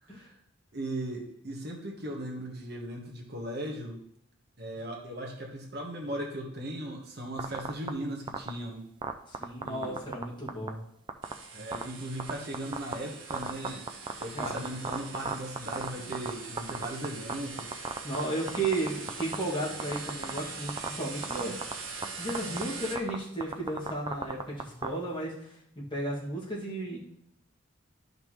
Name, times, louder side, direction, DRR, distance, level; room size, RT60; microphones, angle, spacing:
voice 1, 0.0-0.4 0.7-4.0 4.6-8.9 9.6-10.0 11.5-13.9 14.2-17.8, right 1 dB, 50° right, 1 dB, 1.3 m, -38 dB
sound 1, 7.4-7.9 8.3-8.5 9.0-10.2 10.5-10.7 11.1-11.3 11.7-11.8 12.2-12.9 13.3-16.3 16.6-17.3 17.6-18.2 18.5-19.4 19.8-20.4 20.7-20.9 21.2-21.7 22.0-22.1 22.3-22.6 23.0-24.9, right 4 dB, 25° right, 0.4 m, -32 dB
voice 2, 9.3-10.8 14.2-14.6 18.0-21.9 22.2-27.0, right 2 dB, 25° left, -6 dB, 2.1 m, -34 dB
sound 2, 11.2-23.0, right 4 dB, 75° right, 1.5 m, -42 dB
12.0 x 5.3 x 3.1 m, 0.72 s
head